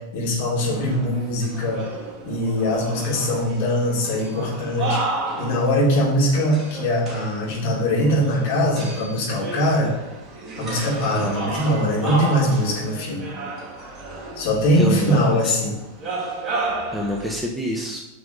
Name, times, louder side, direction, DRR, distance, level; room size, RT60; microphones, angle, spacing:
voice 1, 0.0-1.8 2.2-5.0 5.4-9.9 10.6-13.3 14.4-15.7, equal, 50° left, -4 dB, 3.9 m, -22 dB
sound 1, 0.7-17.4, right 2 dB, 25° right, 2.5 m, -33 dB
voice 2, 14.8-15.6 16.9-18.0, left 1 dB, 5° right, 0 dB, 1.4 m, -26 dB
9.6 x 5.9 x 5.5 m, 0.95 s
figure-of-eight pair, 90°, 0 cm